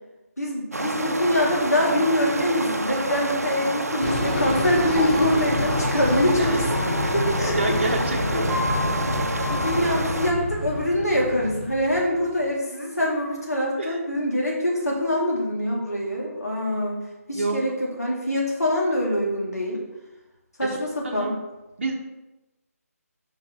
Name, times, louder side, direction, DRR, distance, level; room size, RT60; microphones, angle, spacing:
voice 1, 0.4-6.6 7.0-7.6 8.3-8.4 9.1-9.2 9.5-19.8 20.6-21.4, left 1 dB, 75° left, -3 dB, 2.4 m, -24 dB
sound 1, 0.7-10.3, right 2 dB, 70° right, 0.7 m, -29 dB
sound 2, 4.0-12.3, left 2 dB, 40° left, 0.8 m, -28 dB
sound 3, 4.9-10.1, equal, 10° right, 0.6 m, -34 dB
voice 2, 7.5-8.5 13.8-14.0 17.3-17.6 20.6-20.8 21.0-21.3 21.8-22.0, right 2 dB, 45° right, 0 dB, 1.3 m, -27 dB
5.7 x 5.2 x 4.3 m, 1.0 s
figure-of-eight pair, 155°, 9 cm